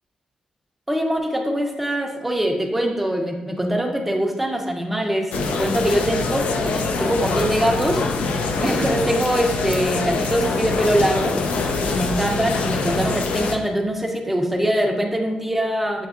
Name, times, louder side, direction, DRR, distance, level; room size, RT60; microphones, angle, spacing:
voice 1, 0.9-5.3 5.6-8.0 8.6-11.4 11.8-16.1, equal, 5° right, 2 dB, 0.5 m, -23 dB
sound 1, 5.3-13.6, left 3 dB, 85° left, 0.4 m, -24 dB
6.9 x 2.7 x 2.4 m, 1.1 s
wide cardioid pair, 155°, 2 cm